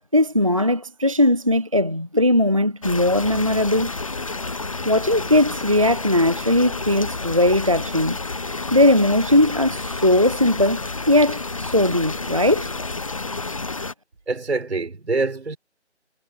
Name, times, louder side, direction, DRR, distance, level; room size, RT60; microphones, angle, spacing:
voice 1, 0.1-3.9 4.9-8.2 8.7-10.8 11.1-12.7, left 1 dB, 30° right, 0.5 m, -19 dB
sound 1, 2.8-13.9, left 3 dB, 30° left, 0.8 m, -30 dB
voice 2, 14.3-15.6, right 3 dB, 70° right, 5.4 m, -25 dB
figure-of-eight pair, 165°, 35 cm